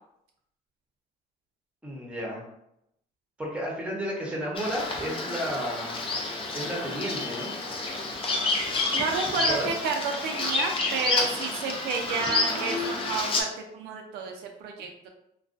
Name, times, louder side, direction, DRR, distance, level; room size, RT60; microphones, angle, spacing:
voice 1, 1.8-2.4 3.4-6.1 6.5-7.5 9.5-9.7, equal, 5° right, -2 dB, 0.8 m, -32 dB
Bird vocalization bird call bird song, 4.5-13.4, left 3 dB, 30° left, 0.5 m, -29 dB
voice 2, 8.9-15.1, right 5 dB, 75° right, 3 dB, 0.4 m, -31 dB
2.3 x 2.2 x 2.5 m, 0.79 s
cardioid pair, 110°, 17 cm